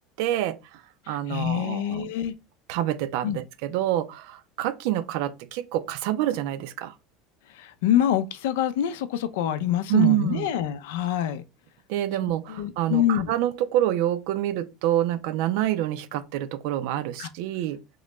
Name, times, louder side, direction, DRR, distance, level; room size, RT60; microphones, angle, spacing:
voice 1, 0.2-0.8 1.1-2.1 2.7-6.9 9.9-10.5 11.9-17.8, right 13 dB, 65° right, 0.4 m, -27 dB
voice 2, 1.1-2.3 3.2-3.4 7.5-11.4 12.2-13.3 17.2-17.3, left 10 dB, 80° left, 0.4 m, -26 dB
3.7 x 2.2 x 3.0 m
supercardioid pair, 150°, 0 cm